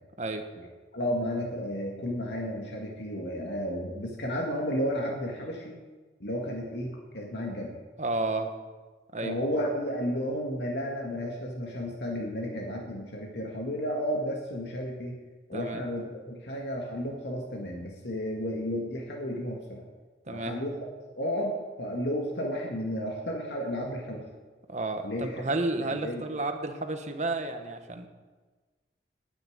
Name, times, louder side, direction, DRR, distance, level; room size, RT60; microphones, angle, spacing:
voice 1, 0.9-5.8 6.2-7.7 9.2-15.1 15.5-19.9 20.3-20.8 21.2-24.2 25.0-25.5 25.8-26.2, equal, 75° left, -1 dB, 1.9 m, -32 dB
voice 2, 8.0-8.5 9.1-9.4 15.5-15.8 20.3-20.6 24.7-28.1, right 2 dB, 40° right, 6 dB, 1.2 m, -31 dB
9.9 x 9.7 x 9.4 m, 1.3 s
head